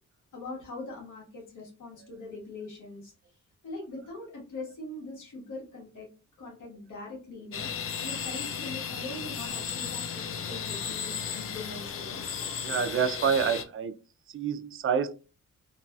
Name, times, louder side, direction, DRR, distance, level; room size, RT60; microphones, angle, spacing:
voice 1, 0.3-3.1 3.6-6.1 6.4-7.7 8.0-12.2, left 2 dB, 80° left, -2 dB, 1.4 m, -42 dB
sound 1, 7.5-13.6, left 7 dB, 45° left, 0.5 m, -35 dB
voice 2, 12.6-14.0 14.3-15.1, right 7 dB, 45° right, 10 dB, 0.4 m, -27 dB
3.0 x 2.7 x 2.3 m, 0.34 s
cardioid pair, 100°, 30 cm